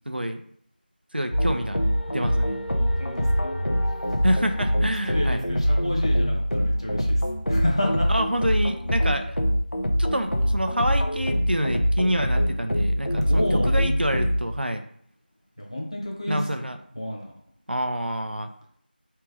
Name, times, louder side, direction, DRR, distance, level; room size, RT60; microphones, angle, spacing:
voice 1, 0.1-0.4 1.1-1.8 2.1-2.6 4.2-5.4 8.1-9.4 10.0-14.8 16.3-16.8 17.7-18.5, equal, 70° right, 6 dB, 0.6 m, -27 dB
sound 1, 1.3-14.4, equal, 85° left, 0.8 m, -24 dB
voice 2, 3.0-3.5 5.1-8.1 13.2-13.8 15.6-16.4 16.9-17.3, left 1 dB, 35° left, -3 dB, 1.2 m, -29 dB
3.4 x 3.1 x 4.8 m, 0.63 s
figure-of-eight pair, 180°, 6 cm